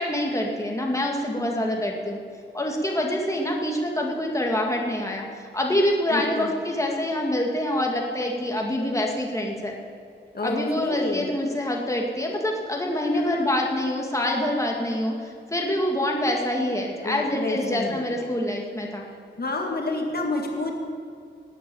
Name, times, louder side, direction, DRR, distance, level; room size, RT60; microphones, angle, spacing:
voice 1, 0.0-2.2 2.5-9.7 10.4-19.0, left 1 dB, 15° left, 0 dB, 2.1 m, -26 dB
voice 2, 1.4-1.8 6.1-6.5 10.3-11.3 13.1-13.6 17.0-18.3 19.4-20.7, left 2 dB, 50° left, 1 dB, 2.0 m, -29 dB
19.0 x 8.6 x 8.5 m, 2.4 s
wide cardioid pair, 105°, 20 cm